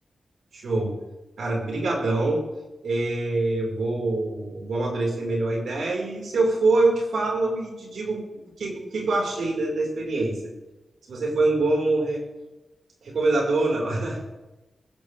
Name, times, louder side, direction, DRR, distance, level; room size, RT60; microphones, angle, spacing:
voice 1, 0.5-0.9 1.4-2.4 2.8-8.2 8.6-10.4 11.1-12.2 13.0-14.2, right 2 dB, 85° right, -1 dB, 4.9 m, -24 dB
20.0 x 17.5 x 3.5 m, 1.1 s
cardioid pair, 75°, 0 cm